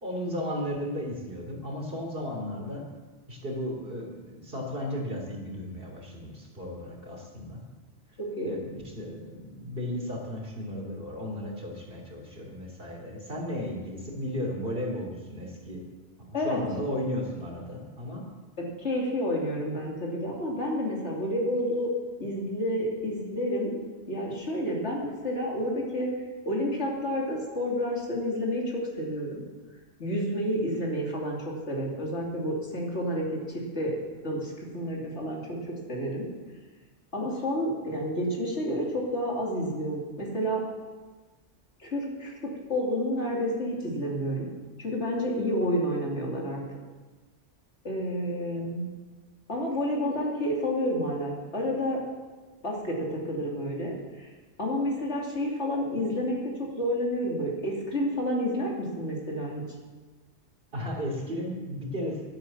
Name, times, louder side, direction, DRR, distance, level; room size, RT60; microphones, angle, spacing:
voice 1, 0.0-2.9 3.3-7.6 8.4-15.8 16.4-18.2 48.5-48.6 60.7-62.2, left 1 dB, 50° right, 1 dB, 3.2 m, -34 dB
voice 2, 8.2-8.6 16.3-16.6 18.6-21.9 22.2-23.7 24.1-26.1 26.4-29.4 30.0-33.9 34.2-36.3 37.1-40.6 41.8-44.5 44.8-46.6 47.8-48.9 49.5-52.0 52.6-54.3 54.6-56.3 56.6-59.6, equal, 70° left, -2 dB, 3.1 m, -30 dB
11.5 x 11.5 x 7.3 m, 1.3 s
omnidirectional pair, 1.2 m